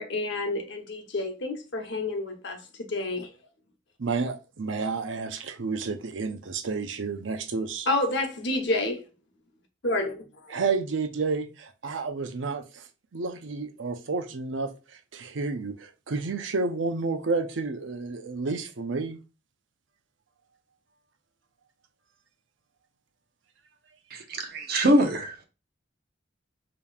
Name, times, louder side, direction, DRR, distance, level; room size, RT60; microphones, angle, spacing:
voice 1, 0.0-2.6 2.9-3.3 7.9-9.0 9.8-10.1 10.4-10.5, left 2 dB, 70° left, 0.9 m, -29 dB
voice 2, 4.0-7.9 10.5-12.9 13.1-19.2, right 4 dB, 85° right, 0.6 m, -30 dB
voice 3, 24.1-25.4, equal, 55° right, 0.9 m, -24 dB
5.1 x 3.0 x 2.3 m
head